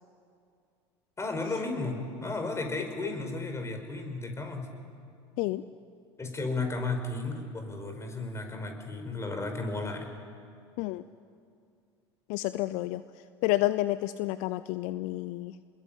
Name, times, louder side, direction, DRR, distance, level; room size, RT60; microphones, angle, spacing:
voice 1, 1.2-4.7 6.2-10.1, left 3 dB, 20° left, 5 dB, 5.2 m, -34 dB
voice 2, 12.3-13.0 13.4-15.5, left 17 dB, 55° left, 15 dB, 0.7 m, -29 dB
28.5 x 21.0 x 8.9 m, 2.3 s
hypercardioid pair, 80°, 14 cm